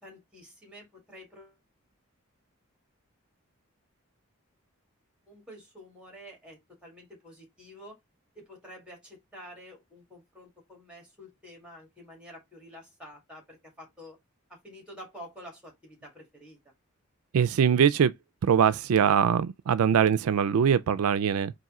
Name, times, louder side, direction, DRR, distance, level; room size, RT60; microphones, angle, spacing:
voice 1, 0.0-1.6 5.3-8.0 8.3-14.2 14.5-16.6, equal, 5° right, 1.9 m, -49 dB
voice 2, 17.3-18.1 18.4-21.5, right 7 dB, 80° right, 0.3 m, -22 dB
4.2 x 2.6 x 3.6 m
head